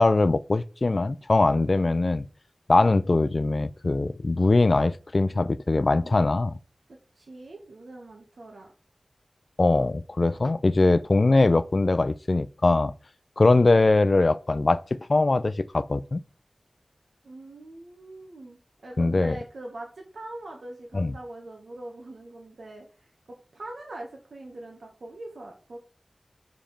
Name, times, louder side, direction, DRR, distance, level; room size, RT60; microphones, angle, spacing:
voice 1, 0.0-2.3 2.7-6.6 9.6-12.9 13.4-14.8 15.1-16.2 19.0-19.4 20.9-21.1, left 2 dB, 55° left, 0.4 m, -21 dB
voice 2, 6.9-8.7 13.4-13.7 17.2-22.9 23.3-25.8, right 2 dB, 90° right, 1.5 m, -43 dB
5.2 x 5.1 x 5.8 m
wide cardioid pair, 65°, 0 cm